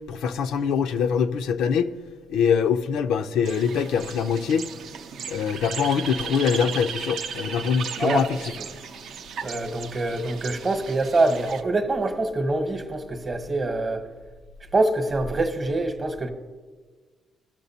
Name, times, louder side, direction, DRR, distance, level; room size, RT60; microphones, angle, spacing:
voice 1, 0.1-1.9 2.3-4.7 5.3-8.3, left 7 dB, 85° left, 0.4 m, -23 dB
sound 1, 3.4-11.6, right 7 dB, 75° right, 0.5 m, -36 dB
voice 2, 9.4-14.1 14.7-16.3, right 2 dB, 35° right, 0.8 m, -25 dB
13.5 x 6.5 x 2.7 m
cardioid pair, 90°, 0 cm